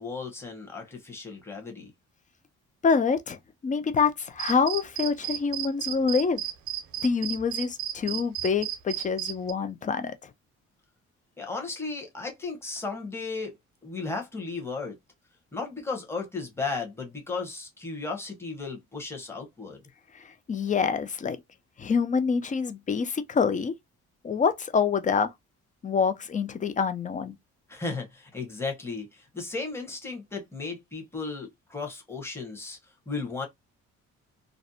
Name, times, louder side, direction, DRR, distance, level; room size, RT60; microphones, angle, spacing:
voice 1, 0.0-1.9 11.4-13.5 13.8-14.9 15.5-19.8 27.7-32.8 33.1-33.5, left 4 dB, 10° left, 0.9 m, -35 dB
voice 2, 2.8-6.4 7.0-10.3 20.1-21.4 21.8-23.7 24.2-25.3 25.8-27.4, left 5 dB, 25° left, 0.4 m, -26 dB
sound 1, 4.4-9.5, right 12 dB, 80° right, 0.6 m, -33 dB
2.6 x 2.1 x 2.6 m
cardioid pair, 90°, 30 cm